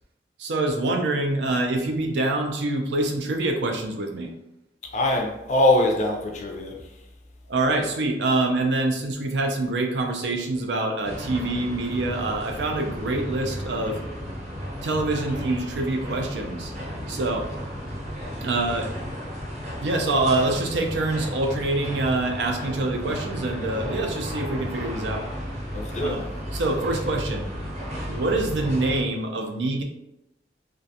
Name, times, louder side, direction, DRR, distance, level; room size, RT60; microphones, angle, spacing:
voice 1, 0.4-4.3 7.5-14.0 14.8-16.7 17.1-17.5 18.4-18.9 19.8-25.3 26.0-27.5 28.1-29.8, right 2 dB, 85° right, 3 dB, 0.4 m, -25 dB
voice 2, 4.9-6.8 25.7-26.2, left 1 dB, 40° left, 2 dB, 0.3 m, -22 dB
sound 1, 11.0-29.0, equal, 40° right, 0.7 m, -34 dB
2.4 x 2.2 x 2.6 m, 0.90 s
head